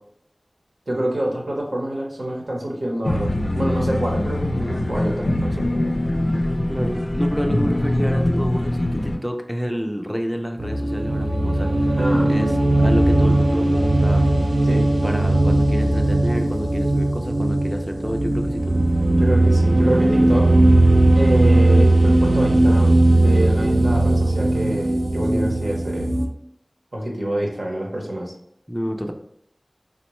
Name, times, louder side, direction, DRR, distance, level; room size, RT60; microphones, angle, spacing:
voice 1, 0.9-6.0 12.0-12.3 14.6-14.8 19.1-20.5 21.2-26.1 26.9-28.3, right 1 dB, 90° right, -2 dB, 0.9 m, -26 dB
sound 1, 3.0-9.2, left 1 dB, 65° left, 0.4 m, -23 dB
voice 2, 6.7-12.0 12.3-14.3 15.0-18.9 25.1-25.5 28.7-29.1, equal, 5° right, 3 dB, 0.4 m, -29 dB
sound 2, 10.6-26.3, right 1 dB, 75° right, 0.4 m, -18 dB
3.6 x 2.1 x 3.0 m, 0.73 s
wide cardioid pair, 45°, 0 cm